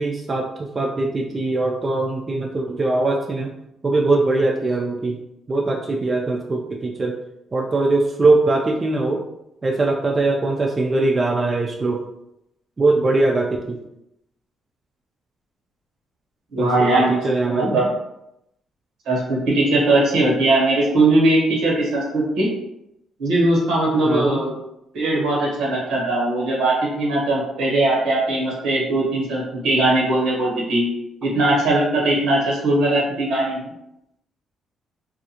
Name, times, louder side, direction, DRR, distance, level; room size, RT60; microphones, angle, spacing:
voice 1, 0.0-3.5 3.8-5.2 5.5-7.2 7.5-9.2 9.6-12.0 12.8-13.8 16.6-17.8 24.0-24.4, right 2 dB, 30° right, 1 dB, 0.3 m, -21 dB
voice 2, 16.5-17.2 17.5-17.9 19.1-22.5 23.2-24.5 24.9-30.9 31.2-33.7, right 2 dB, 85° right, -4 dB, 1.1 m, -19 dB
2.4 x 2.3 x 2.8 m, 0.83 s
cardioid pair, 90°, 0 cm